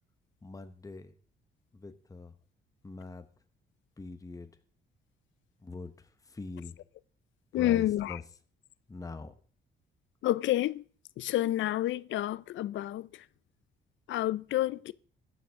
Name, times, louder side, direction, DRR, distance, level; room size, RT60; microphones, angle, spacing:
voice 1, 0.4-1.1 1.7-2.3 2.8-3.3 4.0-4.5 5.6-6.8 7.6-8.2 8.9-9.3, left 3 dB, 15° left, 1.0 m, -43 dB
voice 2, 7.5-8.2 10.2-10.8 11.2-13.3 14.1-14.9, left 14 dB, 70° left, 0.4 m, -29 dB
14.5 x 9.8 x 3.6 m
cardioid pair, 90°, 20 cm